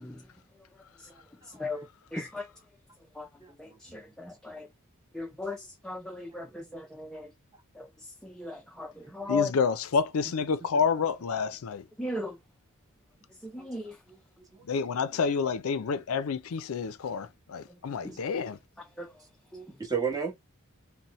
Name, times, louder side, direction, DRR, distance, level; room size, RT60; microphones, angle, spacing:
voice 1, 2.1-2.4 3.2-3.3 4.5-4.6 5.2-5.6 5.9-6.4 7.0-7.2 8.4-8.9 9.2-9.5 12.0-12.3 13.7-13.8, left 3 dB, 5° left, 0.3 m, -33 dB
voice 2, 3.4-3.8 6.3-6.6 13.6-13.7 14.1-14.2 14.5-14.6 18.1-18.2 19.5-20.3, right 6 dB, 15° right, 1.0 m, -34 dB
voice 3, 9.3-11.8 14.7-18.6, left 5 dB, 70° left, 0.4 m, -29 dB
4.1 x 2.1 x 2.9 m
head